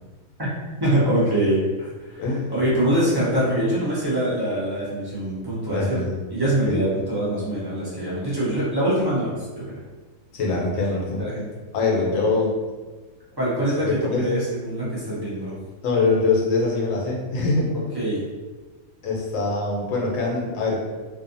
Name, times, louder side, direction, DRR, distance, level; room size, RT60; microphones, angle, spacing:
voice 1, 0.8-2.2 2.5-6.0 6.3-9.8 11.2-11.5 13.4-15.6 17.9-18.3, right 1 dB, 25° right, -9 dB, 0.5 m, -24 dB
voice 2, 2.2-2.5 5.7-6.2 6.7-6.8 10.3-11.3 11.7-12.5 13.8-14.3 15.8-17.7 19.0-20.8, left 3 dB, 70° left, -2 dB, 1.0 m, -23 dB
2.6 x 2.4 x 2.6 m, 1.3 s
omnidirectional pair, 1.5 m